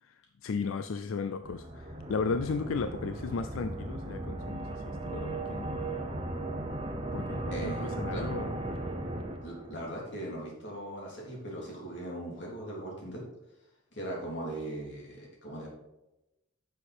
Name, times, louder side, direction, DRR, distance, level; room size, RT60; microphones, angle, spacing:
voice 1, 0.0-5.8 7.1-8.6, left 5 dB, 80° left, 11 dB, 0.4 m, -35 dB
sound 1, 1.4-9.9, right 2 dB, 25° right, 0.9 m, -36 dB
voice 2, 7.5-8.3 9.4-13.2 13.9-15.7, right 1 dB, 60° left, -3 dB, 3.4 m, -39 dB
9.9 x 6.7 x 4.3 m, 0.93 s
head